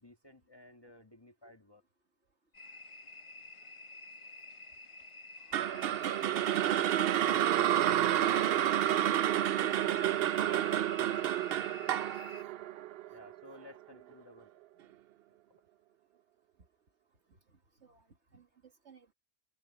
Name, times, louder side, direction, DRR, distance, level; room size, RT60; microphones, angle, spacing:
voice 1, 0.0-1.8 5.6-5.8 10.4-10.6 13.1-15.0 15.5-15.6, left 1 dB, 15° left, 1.6 m, -56 dB
sound 1, 2.5-12.4, left 2 dB, 50° left, 0.3 m, -50 dB
voice 2, 5.5-10.0 10.4-12.2 13.2-13.3 14.0-14.1 17.3-19.1, right 4 dB, 50° right, 2.1 m, -57 dB
sound 2, 5.5-13.7, right 11 dB, 85° right, 0.5 m, -29 dB
omnidirectional pair, 1.6 m